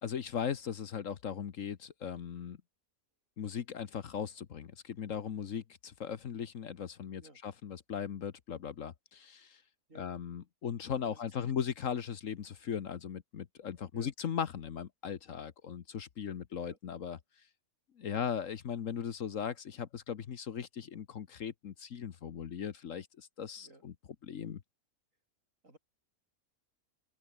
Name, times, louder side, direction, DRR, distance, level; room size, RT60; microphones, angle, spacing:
voice 1, 0.0-2.6 3.4-9.6 9.9-17.2 18.0-23.9 24.2-24.6, left 8 dB, 60° left, 1.4 m, -38 dB
voice 2, 11.0-11.6 13.9-14.1 16.6-16.8 18.1-18.3 23.6-23.8 25.6-25.8, right 2 dB, 60° right, 7.0 m, -56 dB
open air
omnidirectional pair, 1.6 m